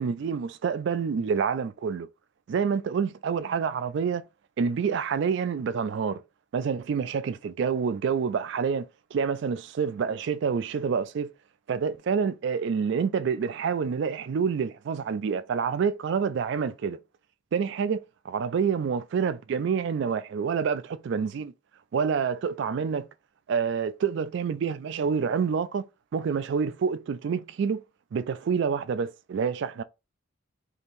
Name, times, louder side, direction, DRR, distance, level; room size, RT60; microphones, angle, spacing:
voice 1, 0.0-2.1 2.5-4.2 4.6-6.2 6.5-11.3 11.7-17.0 17.5-21.5 21.9-23.1 23.5-25.8 26.1-27.8 28.1-29.8, right 6 dB, 60° right, 0.3 m, -27 dB
2.8 x 2.6 x 3.4 m
head